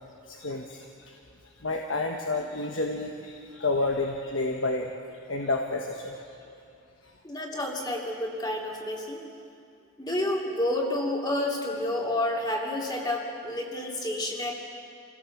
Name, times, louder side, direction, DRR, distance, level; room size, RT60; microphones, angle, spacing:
voice 1, 0.2-1.2 1.4-6.6 7.0-7.1, left 2 dB, 65° left, 2 dB, 1.3 m, -31 dB
voice 2, 7.2-9.2 10.0-14.6, left 1 dB, 20° left, -1 dB, 2.8 m, -29 dB
27.5 x 17.0 x 7.2 m, 2.5 s
head